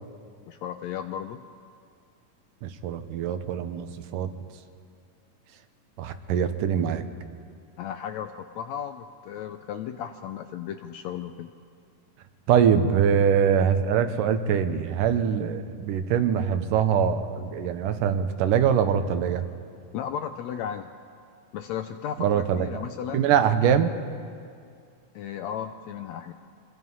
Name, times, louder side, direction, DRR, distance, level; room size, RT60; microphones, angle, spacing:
voice 1, 0.5-1.4 7.8-11.5 19.9-20.9 21.5-23.3 25.1-26.3, left 9 dB, 75° left, 8 dB, 1.6 m, -35 dB
voice 2, 2.6-4.3 6.0-7.1 12.5-19.5 22.2-22.8 23.1-23.9, right 8 dB, 85° right, 9 dB, 2.6 m, -23 dB
25.0 x 21.0 x 5.6 m, 2.3 s
omnidirectional pair, 3.7 m